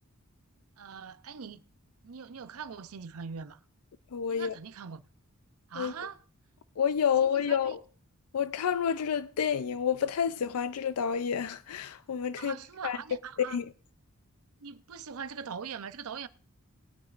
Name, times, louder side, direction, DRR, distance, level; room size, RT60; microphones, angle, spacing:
voice 1, 0.8-1.6 2.0-3.6 4.3-5.0 5.7-6.2 7.2-7.8 12.4-13.6 14.6-16.3, right 6 dB, 75° right, 0.6 m, -42 dB
voice 2, 4.1-4.5 5.8-5.9 6.8-7.8 8.3-12.6 12.8-13.0 13.4-13.6, left 7 dB, 80° left, 0.4 m, -29 dB
21.0 x 9.0 x 2.5 m
head